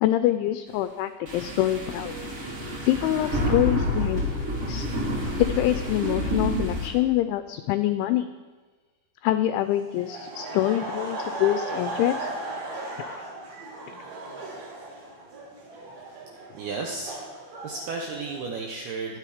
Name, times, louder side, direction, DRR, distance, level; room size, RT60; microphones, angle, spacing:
voice 1, 0.0-2.3 2.9-4.2 4.7-4.9 5.4-8.3 9.2-12.3, left 13 dB, 85° left, 10 dB, 2.7 m, -25 dB
sound 1, 1.3-6.9, left 1 dB, 30° right, 3.0 m, -28 dB
sound 2, 2.0-6.8 7.1-7.2, equal, 15° right, 1.9 m, -45 dB
Laughter, 9.9-18.4, right 2 dB, 60° right, 4.8 m, -36 dB
voice 2, 16.5-17.2 17.6-19.2, right 4 dB, 75° right, 1 dB, 2.3 m, -33 dB
23.0 x 9.1 x 5.0 m, 1.4 s
omnidirectional pair, 6.0 m